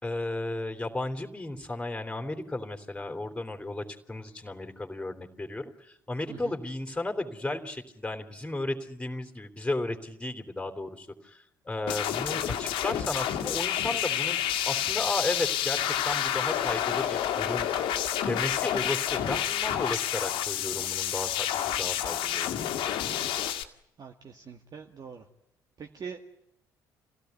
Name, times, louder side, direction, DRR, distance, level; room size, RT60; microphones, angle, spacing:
voice 1, 0.0-14.4 14.6-17.7 18.3-22.7, left 2 dB, 10° left, 6 dB, 3.3 m, -34 dB
sound 1, 11.9-23.6, left 10 dB, 60° left, 1.8 m, -29 dB
voice 2, 24.0-25.2 25.8-26.3, right 6 dB, 40° right, 4 dB, 1.8 m, -43 dB
26.5 x 17.0 x 9.3 m, 0.81 s
figure-of-eight pair, 50°, 10 cm